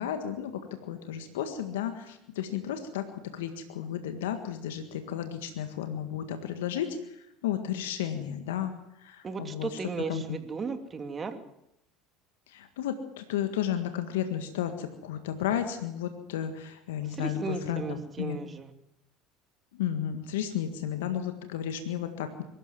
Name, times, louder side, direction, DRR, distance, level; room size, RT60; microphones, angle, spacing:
voice 1, 0.0-9.8 10.1-10.2 12.5-18.4 19.7-22.4, left 10 dB, 75° left, 8 dB, 1.7 m, -33 dB
voice 2, 9.2-11.4 17.0-18.7, right 4 dB, 30° right, 8 dB, 2.7 m, -35 dB
22.5 x 13.0 x 9.2 m, 0.81 s
hypercardioid pair, 75°, 0 cm